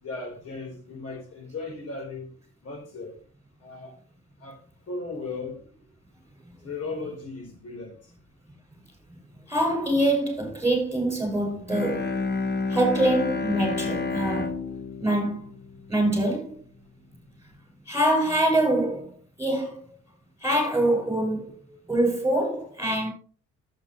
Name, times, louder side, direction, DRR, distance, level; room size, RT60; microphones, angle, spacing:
voice 1, 0.0-2.3 2.6-3.2 3.6-3.9 4.4-4.6 4.9-5.6 6.6-8.0, left 3 dB, 55° left, 4.1 m, -36 dB
voice 2, 9.5-12.1 12.7-14.6 15.0-15.5 15.9-16.6 17.9-19.8 20.4-21.5 21.9-23.1, right 1 dB, 10° right, 6.0 m, -24 dB
Bowed string instrument, 11.6-16.5, left 4 dB, 35° left, 1.4 m, -30 dB
11.0 x 8.4 x 3.1 m
cardioid pair, 90°, 30 cm